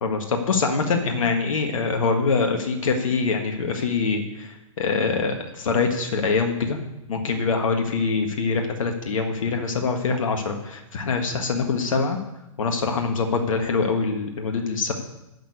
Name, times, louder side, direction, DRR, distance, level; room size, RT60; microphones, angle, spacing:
voice 1, 0.0-6.8 7.1-12.2 12.6-14.9, left 4 dB, 70° left, 4 dB, 1.7 m, -24 dB
10.5 x 6.8 x 8.5 m, 0.92 s
hypercardioid pair, 120°, 17 cm